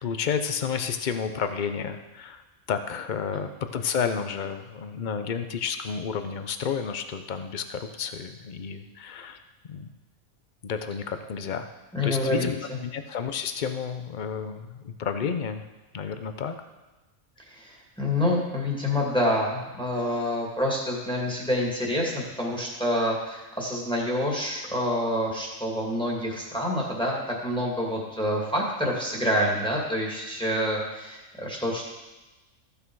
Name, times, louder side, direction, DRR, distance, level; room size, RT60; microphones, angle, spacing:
voice 1, 0.0-2.4 2.7-9.4 9.7-9.9 10.6-11.7 12.0-15.6 15.9-16.5, left 6 dB, 45° left, 8 dB, 0.7 m, -31 dB
voice 2, 11.9-12.5 17.5-31.8, left 1 dB, 5° left, -3 dB, 2.1 m, -27 dB
14.5 x 6.8 x 4.7 m, 1.1 s
omnidirectional pair, 1.4 m